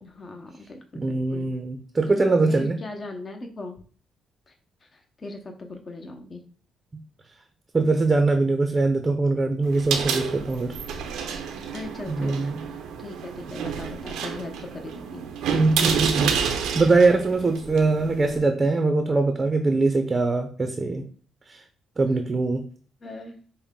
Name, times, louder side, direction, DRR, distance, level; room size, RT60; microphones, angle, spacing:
voice 1, 0.0-1.5 2.5-3.8 4.5-4.6 4.8-6.4 11.7-12.4 13.0-15.2 23.0-23.4, left 2 dB, 35° left, 4 dB, 0.7 m, -39 dB
voice 2, 1.0-2.8 6.9-7.0 7.7-10.8 12.1-12.6 15.5-21.0 21.5-21.6 22.0-22.7, right 3 dB, 25° right, 6 dB, 0.5 m, -22 dB
sound 1, 9.6-18.4, right 7 dB, 90° right, 0.6 m, -29 dB
5.4 x 2.1 x 3.6 m, 0.43 s
cardioid pair, 90°, 0 cm